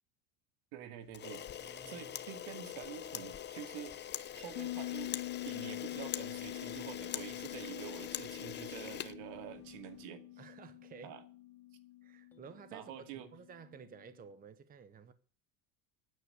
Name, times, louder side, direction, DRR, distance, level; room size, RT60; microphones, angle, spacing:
voice 1, 0.7-1.4 1.9-5.1 5.5-10.2 11.0-11.2 12.7-13.3, right 10 dB, 70° right, 2.4 m, -47 dB
Camera, 1.1-9.8, left 10 dB, 25° left, 0.7 m, -43 dB
voice 2, 1.6-2.1 10.4-11.2 12.0-15.1, right 6 dB, 20° right, 1.0 m, -53 dB
Bass guitar, 4.6-13.9, left 17 dB, 65° left, 2.3 m, -46 dB
sound 1, 7.3-12.5, left 1 dB, 5° left, 2.2 m, -66 dB
11.5 x 9.6 x 8.3 m
cardioid pair, 150°, 43 cm